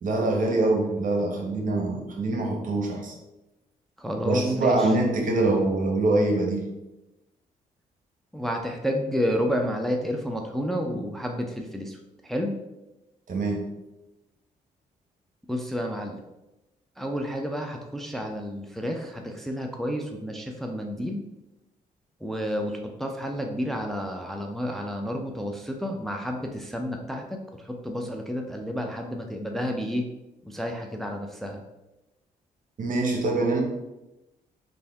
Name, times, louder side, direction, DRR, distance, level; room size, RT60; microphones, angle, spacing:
voice 1, 0.0-3.1 4.2-6.7 13.3-13.6 32.8-33.6, right 2 dB, 55° right, 1 dB, 0.9 m, -24 dB
voice 2, 4.0-4.9 8.3-12.0 12.2-12.5 15.5-16.2 17.0-21.2 22.2-30.1 30.5-31.6, equal, ahead, 2 dB, 0.5 m, -30 dB
3.4 x 2.6 x 3.4 m, 0.98 s
supercardioid pair, 55°, 17 cm